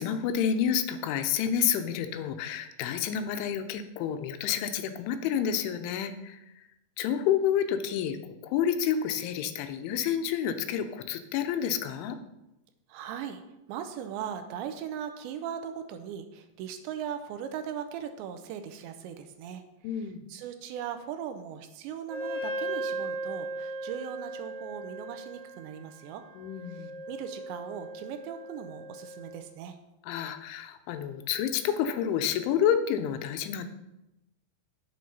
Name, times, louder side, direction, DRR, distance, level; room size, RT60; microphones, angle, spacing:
voice 1, 0.0-6.4 7.0-8.2 8.4-12.2 19.8-20.2 26.4-26.9 30.0-33.7, left 8 dB, 85° left, 8 dB, 3.2 m, -29 dB
voice 2, 12.9-13.4 13.7-19.6 19.9-26.2 26.8-29.8, right 8 dB, 80° right, 8 dB, 2.9 m, -39 dB
Wind instrument woodwind instrument, 22.1-29.4, right 2 dB, 35° right, 4.8 m, -38 dB
9.7 x 7.8 x 5.5 m, 0.93 s
omnidirectional pair, 5.4 m